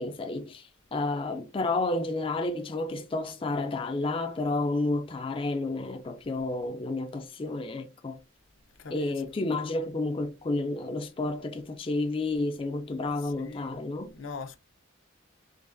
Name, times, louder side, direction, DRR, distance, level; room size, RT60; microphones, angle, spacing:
voice 1, 0.0-8.2 8.9-14.2, left 2 dB, 25° left, 0.3 m, -31 dB
voice 2, 8.8-9.1 13.2-13.8 14.1-14.6, left 4 dB, 75° left, 0.6 m, -41 dB
3.8 x 3.3 x 2.5 m
head